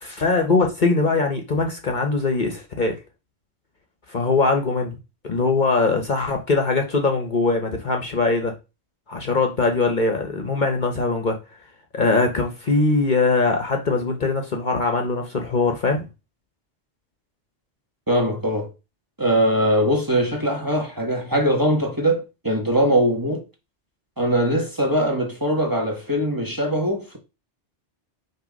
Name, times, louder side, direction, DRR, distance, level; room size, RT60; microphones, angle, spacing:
voice 1, 0.0-3.0 4.1-5.0 5.2-8.5 9.1-11.4 11.9-16.1, left 3 dB, 45° left, 1.0 m, -21 dB
voice 2, 18.1-18.7 19.2-23.4 24.2-27.2, equal, 20° right, 1.4 m, -21 dB
6.0 x 3.1 x 5.2 m
omnidirectional pair, 1.2 m